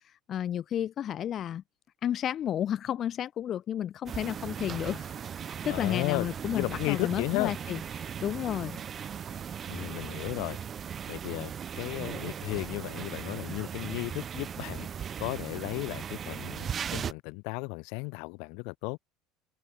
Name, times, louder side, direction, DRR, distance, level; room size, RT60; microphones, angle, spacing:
voice 1, 0.0-1.6 2.0-5.1 5.6-8.8, left 10 dB, 35° left, 2.4 m, -32 dB
sound 1, 4.0-17.1, right 8 dB, 30° right, 7.5 m, -38 dB
voice 2, 5.7-7.5 9.7-10.6 11.1-14.9 15.2-19.0, left 33 dB, 70° left, 5.4 m, -34 dB
open air
cardioid pair, 145°, 0 cm